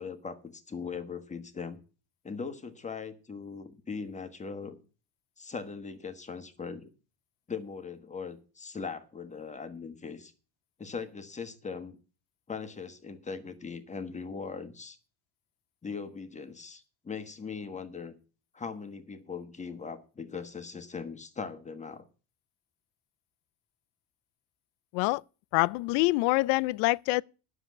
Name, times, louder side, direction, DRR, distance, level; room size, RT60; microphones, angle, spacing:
voice 1, 0.0-1.8 2.2-4.8 5.4-6.9 7.5-10.3 10.8-12.0 12.5-15.0 15.8-18.1 18.5-22.0, left 5 dB, 15° left, 1.4 m, -40 dB
voice 2, 25.5-27.2, left 23 dB, 75° left, 0.5 m, -25 dB
10.0 x 7.1 x 8.2 m
cardioid pair, 130°, 43 cm